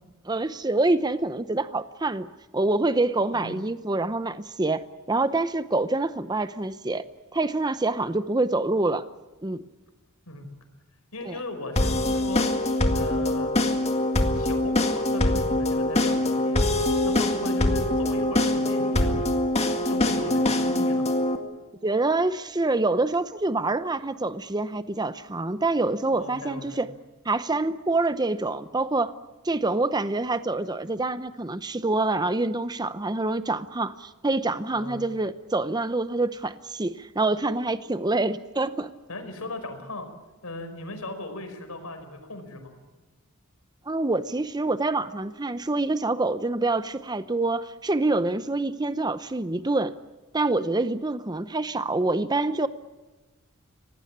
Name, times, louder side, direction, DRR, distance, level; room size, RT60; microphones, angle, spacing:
voice 1, 0.3-2.3 2.5-7.0 7.3-9.0 9.4-9.6 11.3-11.4 21.8-26.9 27.2-29.1 29.4-38.9 43.9-49.9 50.3-52.7, right 2 dB, 20° right, 12 dB, 0.7 m, -26 dB
voice 2, 11.1-12.5 12.9-13.6 14.3-19.3 19.6-21.1 26.1-26.8 34.7-35.0 39.1-40.1 40.4-42.7, left 2 dB, 80° left, 7 dB, 5.0 m, -38 dB
sound 1, 11.8-21.4, left 1 dB, 30° left, 2.0 m, -23 dB
25.5 x 18.5 x 8.7 m, 1.2 s
head